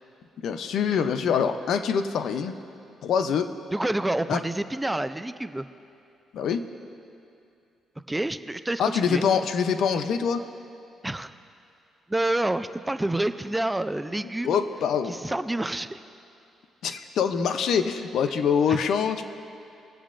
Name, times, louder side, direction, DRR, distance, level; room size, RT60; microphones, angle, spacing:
voice 1, 0.4-2.5 3.0-3.5 4.3-4.4 6.3-6.6 8.8-10.4 14.4-15.1 16.8-19.3, left 7 dB, 70° left, 9 dB, 0.5 m, -24 dB
voice 2, 3.7-5.7 8.1-9.2 11.0-11.3 12.1-14.6 15.1-16.0 18.7-18.8, right 1 dB, 10° right, 11 dB, 0.4 m, -28 dB
21.0 x 8.1 x 2.5 m, 2.6 s
cardioid pair, 90°, 0 cm